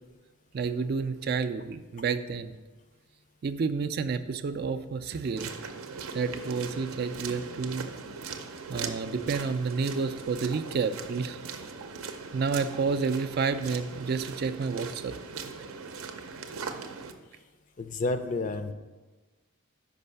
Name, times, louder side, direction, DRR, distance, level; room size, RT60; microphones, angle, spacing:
voice 1, 0.5-2.6 3.4-5.5 6.1-7.9 8.7-11.4 12.3-15.1, right 5 dB, 45° right, 10 dB, 0.3 m, -30 dB
sound 1, 5.4-17.1, right 5 dB, 80° right, 0.6 m, -40 dB
voice 2, 17.8-18.7, left 2 dB, 35° left, 9 dB, 0.4 m, -30 dB
5.4 x 5.4 x 6.7 m, 1.2 s
head